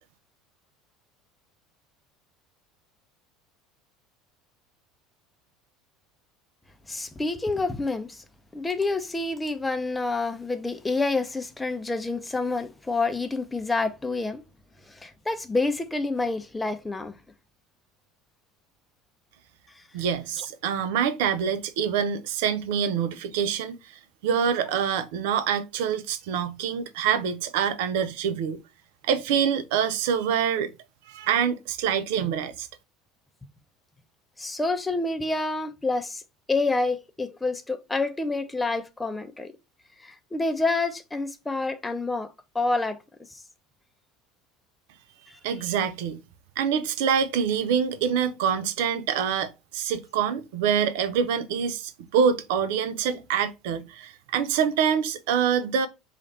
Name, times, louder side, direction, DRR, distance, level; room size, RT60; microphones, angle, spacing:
voice 1, 6.9-8.2 8.5-14.4 14.9-17.2 20.4-20.5 34.4-36.2 36.5-39.5 40.0-43.0 43.3-43.4 45.3-45.4, left 3 dB, 15° left, 0.6 m, -28 dB
voice 2, 19.9-23.8 24.2-28.6 29.0-30.7 31.1-32.7 45.4-46.2 46.6-55.9, right 7 dB, 75° right, 0.5 m, -25 dB
3.2 x 2.4 x 4.0 m
hypercardioid pair, 80°, 0 cm